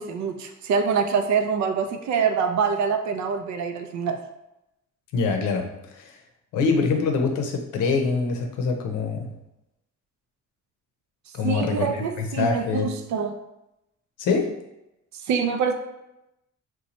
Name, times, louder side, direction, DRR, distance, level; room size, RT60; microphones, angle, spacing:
voice 1, 0.0-4.2 11.4-13.3 15.3-15.7, right 6 dB, 70° right, 6 dB, 0.5 m, -25 dB
voice 2, 5.1-5.7 5.9-6.2 6.5-9.3 11.3-11.9 12.2-12.9 14.2-14.5, left 4 dB, 85° left, 4 dB, 0.6 m, -24 dB
2.8 x 2.2 x 4.1 m, 0.88 s
cardioid pair, 90°, 30 cm